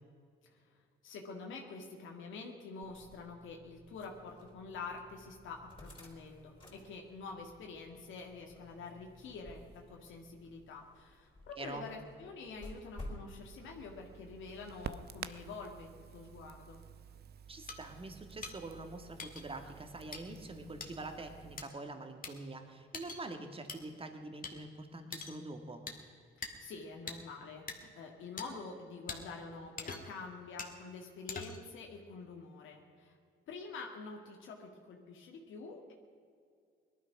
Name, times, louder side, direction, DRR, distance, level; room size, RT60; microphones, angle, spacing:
voice 1, 0.5-16.8 26.4-33.2 33.5-35.9, left 4 dB, 80° left, 1 dB, 1.9 m, -47 dB
sound 1, 2.8-13.3, left 1 dB, 25° left, 4.2 m, -54 dB
voice 2, 11.6-11.9 17.5-25.8, right 2 dB, 30° right, 6 dB, 2.0 m, -45 dB
Crackle, 13.4-21.6, right 8 dB, 55° right, 0.7 m, -51 dB
sound 2, 17.7-17.8 18.4-18.5 19.2-19.4 20.1-20.2 20.8-20.9 21.6-21.7 22.2-22.3 22.9-23.2 23.7-23.8 24.4-24.5 25.1-25.4 25.9-26.0 26.4-26.5 27.1-27.2 27.7-27.8 28.4-28.5 29.1-29.2 29.8-30.2 30.6-30.7 31.3-31.7, left 4 dB, 45° left, 2.0 m, -43 dB
18.5 x 12.5 x 6.1 m, 2.3 s
cardioid pair, 90°, 20 cm